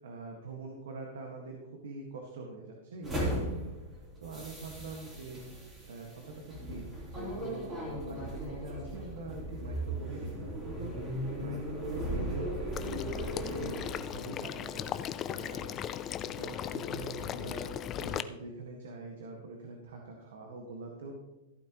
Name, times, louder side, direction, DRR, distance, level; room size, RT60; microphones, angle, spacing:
voice 1, 0.0-3.8 4.2-5.5 5.8-14.9 15.3-15.8 16.4-21.1, right 3 dB, 85° right, 1 dB, 1.7 m, -44 dB
sound 1, 3.0-13.9, right 1 dB, 20° right, 3.4 m, -37 dB
Water / Liquid, 12.7-18.2, left 10 dB, 25° left, 0.4 m, -37 dB
14.5 x 8.7 x 3.1 m, 1.0 s
supercardioid pair, 160°, 0 cm